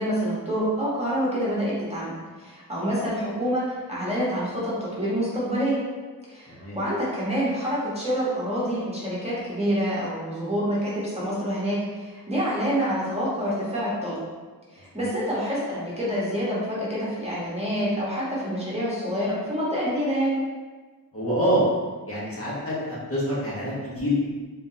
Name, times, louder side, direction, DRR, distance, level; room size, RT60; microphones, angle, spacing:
voice 1, 0.0-5.8 6.3-14.2 14.7-20.4, equal, 15° right, -9 dB, 1.2 m, -27 dB
voice 2, 6.5-6.8 21.1-21.6 22.1-24.2, equal, 35° left, -9 dB, 1.4 m, -26 dB
3.9 x 3.4 x 2.8 m, 1.3 s
wide cardioid pair, 70°, 37 cm